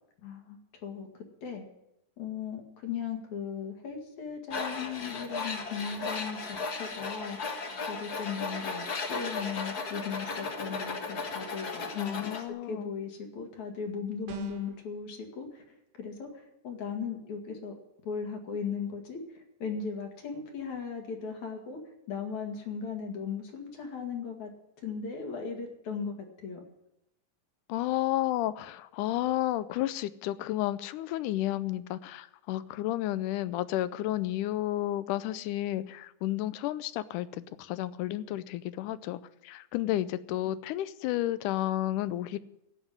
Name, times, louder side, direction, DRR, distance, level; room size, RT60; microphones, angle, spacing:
voice 1, 0.2-1.7 2.2-7.4 7.9-15.6 16.0-17.8 18.0-21.8 22.1-24.5 24.8-26.6, left 6 dB, 65° left, 2 dB, 3.3 m, -37 dB
Tools, 4.5-12.4, left 4 dB, 45° left, 1.3 m, -36 dB
voice 2, 12.0-12.9 27.7-37.3 37.6-42.4, left 14 dB, 80° left, 15 dB, 2.1 m, -32 dB
sound 1, 14.3-14.8, right 11 dB, 60° right, 1.8 m, -43 dB
15.5 x 5.9 x 9.6 m, 0.84 s
omnidirectional pair, 3.6 m